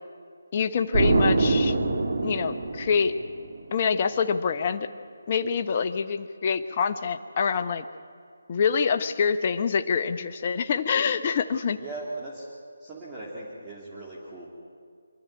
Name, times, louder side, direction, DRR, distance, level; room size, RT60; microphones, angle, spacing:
voice 1, 0.5-1.7 2.2-3.1 3.7-4.9 5.3-7.8 8.5-11.8, left 6 dB, 35° left, 8 dB, 0.9 m, -26 dB
Explosion, 0.9-3.6, right 3 dB, 55° right, 2.0 m, -24 dB
voice 2, 11.8-12.5 12.8-14.5, right 2 dB, 15° right, -6 dB, 2.9 m, -38 dB
24.5 x 12.5 x 9.5 m, 2.1 s
figure-of-eight pair, 155°, 0 cm